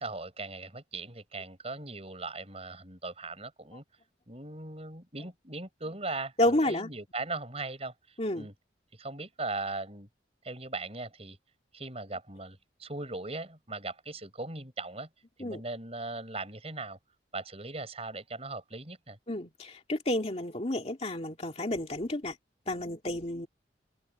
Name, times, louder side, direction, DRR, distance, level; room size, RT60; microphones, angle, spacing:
voice 1, 0.0-3.8 4.3-7.9 8.4-8.5 9.0-10.1 10.4-11.4 11.7-15.1 15.4-17.0 17.3-19.2, right 3 dB, 35° right, 7.0 m, -39 dB
voice 2, 6.4-6.9 8.2-8.5 15.4-15.6 19.3-22.4 22.7-23.5, left 1 dB, 35° left, 2.5 m, -30 dB
head